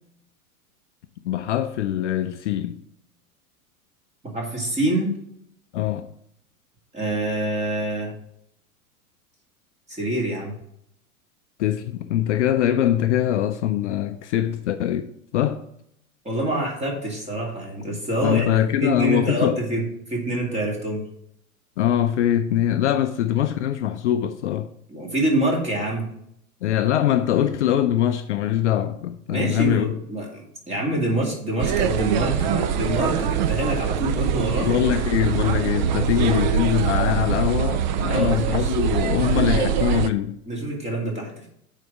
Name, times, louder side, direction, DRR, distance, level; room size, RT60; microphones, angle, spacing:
voice 1, 1.2-2.8 5.7-6.1 11.6-15.6 18.2-19.6 21.8-24.7 26.6-29.9 34.6-40.4, left 11 dB, 55° left, 0.6 m, -23 dB
voice 2, 4.2-5.1 6.9-8.1 9.9-10.5 16.2-19.8 20.1-21.0 24.9-26.1 29.3-34.7 36.0-36.6 38.0-38.7 39.2-39.7 40.5-41.5, right 1 dB, 15° right, 2.4 m, -26 dB
sound 1, 31.6-40.1, right 8 dB, 35° right, 0.4 m, -23 dB
9.1 x 4.1 x 4.7 m
figure-of-eight pair, 95°, 44 cm